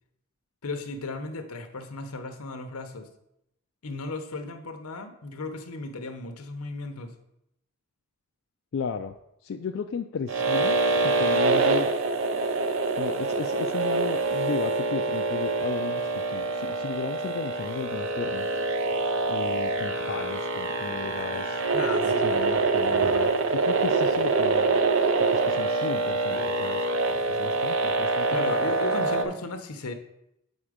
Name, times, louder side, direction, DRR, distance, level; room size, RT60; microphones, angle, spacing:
voice 1, 0.6-3.1 3.8-7.1 21.7-22.5 28.3-29.9, left 3 dB, 90° left, 7 dB, 0.8 m, -35 dB
voice 2, 8.7-9.1 9.4-10.8 11.0-11.9 13.0-16.0 16.3-18.5 19.3-21.6 22.0-24.8 25.3-26.9 27.3-28.5, left 5 dB, 60° left, 5 dB, 0.3 m, -35 dB
sound 1, 10.3-29.2, right 3 dB, 60° right, 0.6 m, -25 dB
7.2 x 4.4 x 5.0 m, 0.81 s
head